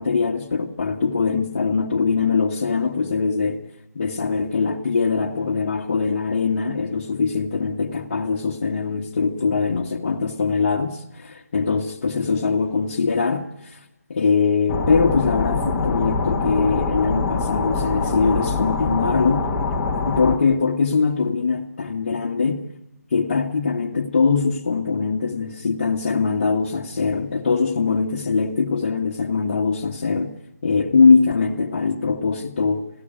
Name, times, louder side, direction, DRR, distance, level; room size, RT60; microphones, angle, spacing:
voice 1, 0.0-3.6 3.9-13.8 14.1-19.5 20.1-22.7 23.1-30.3 30.6-32.9, left 4 dB, 35° left, 1.5 m, -22 dB
sound 1, 14.7-20.4, left 4 dB, 10° left, 1.3 m, -24 dB
30.0 x 16.5 x 9.1 m
figure-of-eight pair, 160°, 9 cm